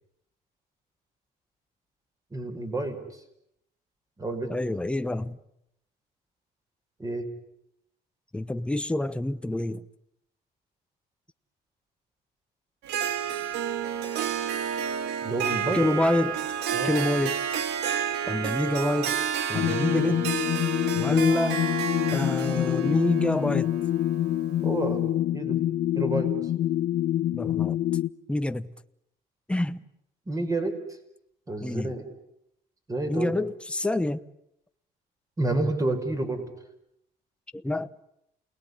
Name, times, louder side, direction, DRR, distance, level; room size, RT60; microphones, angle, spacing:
voice 1, 2.3-3.0 4.2-4.5 7.0-7.3 15.2-15.9 16.7-16.9 20.0-20.1 24.6-25.0 25.3-25.6 25.9-26.3 30.3-30.8 31.5-32.0 32.9-33.3 35.4-36.4, right 2 dB, 20° right, 5.7 m, -29 dB
voice 2, 4.5-5.4 8.3-9.8 15.7-16.4 16.8-17.4 18.3-19.2 19.5-20.4 21.0-21.6 22.1-23.7 27.3-27.8 28.3-28.7 29.5-29.8 31.6-31.9 33.1-34.2 37.5-37.9, left 1 dB, 5° left, 1.0 m, -27 dB
Harp, 12.8-24.7, right 8 dB, 85° right, 2.2 m, -31 dB
sound 1, 19.5-28.1, left 13 dB, 65° left, 1.4 m, -26 dB
28.5 x 20.0 x 9.9 m
cardioid pair, 110°, 17 cm